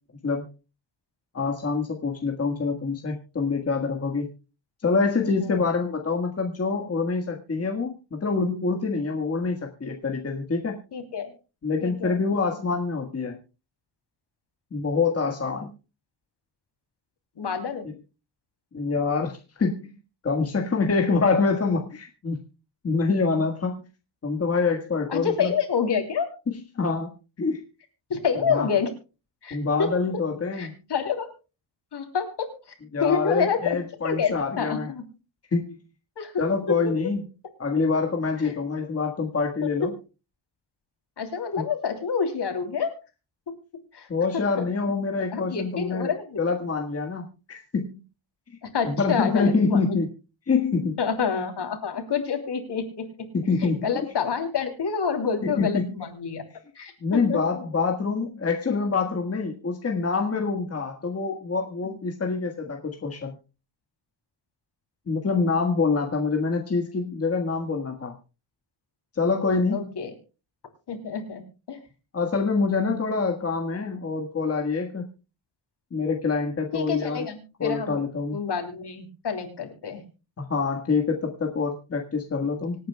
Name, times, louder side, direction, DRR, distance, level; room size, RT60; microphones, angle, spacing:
voice 1, 1.3-4.3 4.8-10.8 11.6-13.4 14.7-15.7 18.7-19.9 20.2-22.4 22.8-23.8 24.2-25.5 26.7-27.1 27.4-27.6 28.5-28.7 29.5-30.8 32.9-34.9 35.5-35.8 36.4-37.2 37.6-39.9 41.6-41.7 44.1-46.1 46.4-48.0 48.8-50.1 50.5-51.0 53.3-53.9 55.4-56.0 57.0-63.3 65.1-68.1 69.1-70.0 72.1-75.1 75.9-77.3 77.6-78.4 80.4-82.9, left 4 dB, 30° left, 2 dB, 1.6 m, -26 dB
voice 2, 10.9-11.3 11.8-12.2 17.4-17.9 25.1-26.3 28.1-28.9 29.4-29.9 30.5-31.3 31.9-32.5 33.0-33.8 34.0-35.0 36.2-36.3 36.7-36.8 38.4-38.5 39.6-39.7 41.2-42.9 43.9-44.1 44.6-44.7 45.3-46.4 48.6-49.9 51.0-53.1 53.6-56.4 56.7-57.6 69.7-70.1 70.9-71.4 71.7-71.8 76.7-78.0 78.3-80.0 82.4-82.5, left 6 dB, 60° left, 5 dB, 3.2 m, -28 dB
26.0 x 9.3 x 2.2 m, 0.31 s
wide cardioid pair, 175°, 47 cm